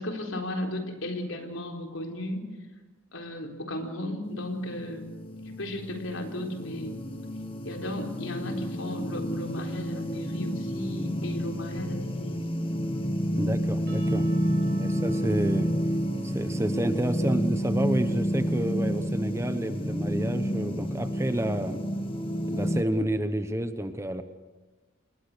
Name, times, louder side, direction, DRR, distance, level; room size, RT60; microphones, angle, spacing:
voice 1, 0.0-2.4 3.1-5.0 5.5-7.0 7.6-12.4 14.6-15.0, left 1 dB, 80° left, 4 dB, 3.9 m, -35 dB
sound 1, 4.2-22.8, equal, 25° left, 1.8 m, -30 dB
voice 2, 13.3-14.3 14.8-15.7 16.2-21.8 22.5-24.2, right 1 dB, 15° right, 10 dB, 1.0 m, -29 dB
Percussion / Church bell, 13.9-18.2, right 3 dB, 50° right, 4.4 m, -52 dB
28.0 x 20.5 x 6.8 m, 1.2 s
head